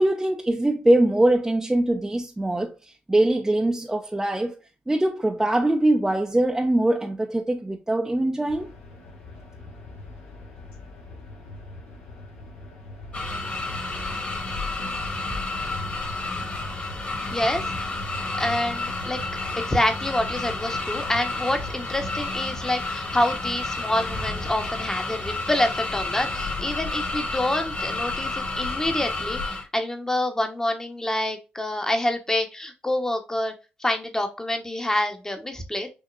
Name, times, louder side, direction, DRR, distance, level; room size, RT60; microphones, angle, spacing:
voice 1, 0.0-2.7 3.1-4.5 4.9-8.7, right 1 dB, 10° right, 0.7 m, -22 dB
sound 1, 8.5-26.9, left 2 dB, 80° left, 2.0 m, -42 dB
sound 2, 13.1-29.6, left 3 dB, 40° left, 2.4 m, -30 dB
voice 2, 17.3-17.6 18.4-19.2 19.6-33.5 33.8-35.9, left 1 dB, 15° left, 1.1 m, -27 dB
6.3 x 2.9 x 2.5 m
supercardioid pair, 60°, 4 cm